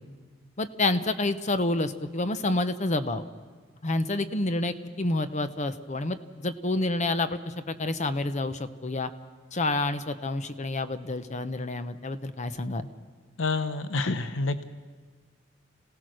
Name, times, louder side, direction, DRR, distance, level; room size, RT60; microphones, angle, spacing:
voice 1, 0.6-3.2 3.8-9.1 9.5-12.9, left 2 dB, 40° left, 11 dB, 0.9 m, -28 dB
voice 2, 13.4-14.6, left 3 dB, 85° left, 10 dB, 0.8 m, -28 dB
26.5 x 17.5 x 6.4 m, 1.5 s
head